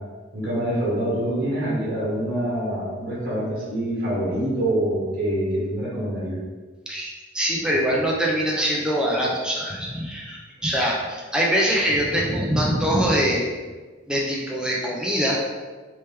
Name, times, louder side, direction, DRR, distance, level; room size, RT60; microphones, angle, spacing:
voice 1, 0.3-6.4, right 1 dB, 50° right, -7 dB, 1.2 m, -25 dB
voice 2, 6.9-13.4 14.1-15.4, equal, 5° right, -3 dB, 0.5 m, -23 dB
3.2 x 3.0 x 3.4 m, 1.4 s
head